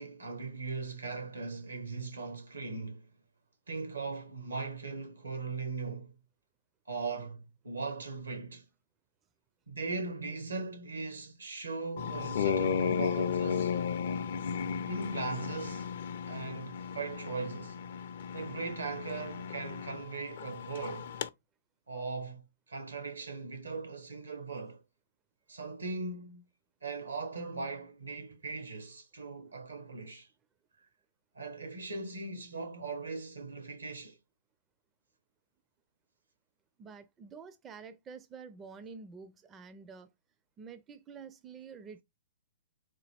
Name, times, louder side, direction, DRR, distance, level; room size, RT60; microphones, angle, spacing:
voice 1, 0.0-3.1 3.7-6.1 6.9-8.6 9.7-13.8 14.8-15.9 16.3-17.8 18.3-21.2 21.9-24.8 25.5-26.5 26.8-30.3 31.3-34.2, right 4 dB, 85° right, 1.2 m, -39 dB
sound 1, 12.0-21.3, left 7 dB, 60° left, 0.4 m, -34 dB
voice 2, 36.8-40.1 40.6-42.0, right 5 dB, 20° right, 0.4 m, -48 dB
4.0 x 2.2 x 3.4 m
figure-of-eight pair, 120°, 0 cm